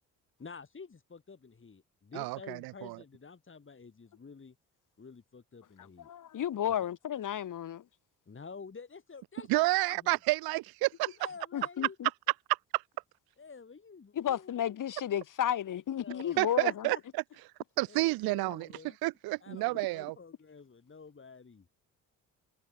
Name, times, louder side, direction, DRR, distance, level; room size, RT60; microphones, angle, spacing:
voice 1, 0.4-4.6 5.0-6.1 6.8-6.9 8.3-10.2 11.2-12.0 13.4-14.5 16.0-17.0 17.8-19.0 19.4-21.7, left 5 dB, 35° left, 6.3 m, -49 dB
voice 2, 2.2-2.6 2.8-3.0 9.5-11.2 12.7-12.8 16.4-17.0 17.8-18.7 19.0-20.2, right 21 dB, 80° right, 1.7 m, -29 dB
voice 3, 6.1-7.8 11.5-12.1 14.2-16.9, left 10 dB, 60° left, 3.4 m, -33 dB
supercardioid pair, 60°, 36 cm